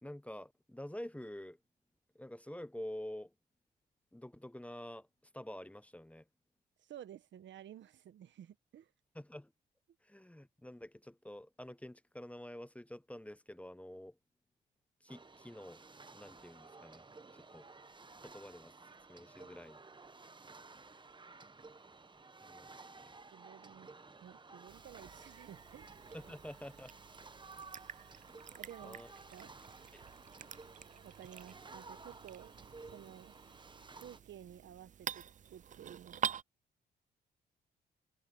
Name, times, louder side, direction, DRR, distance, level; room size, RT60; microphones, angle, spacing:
voice 1, 0.0-1.6 2.1-3.3 4.1-5.1 5.3-6.3 9.1-9.5 10.0-14.2 15.0-15.8 16.1-17.0 17.3-17.7 18.2-19.8 22.4-22.7 23.0-23.1 26.1-26.9 28.8-29.1 29.6-30.1, left 1 dB, 5° left, 1.2 m, -48 dB
voice 2, 6.8-8.9 23.3-23.9 24.2-25.9 26.3-26.4 28.6-29.0 29.3-29.5 31.0-32.5 32.9-33.3 34.0-35.2 35.5-36.4, right 10 dB, 70° right, 1.4 m, -53 dB
sound 1, 15.1-34.2, right 3 dB, 25° right, 1.2 m, -55 dB
sound 2, 24.7-36.4, right 9 dB, 40° right, 0.4 m, -47 dB
supercardioid pair, 60°, 20 cm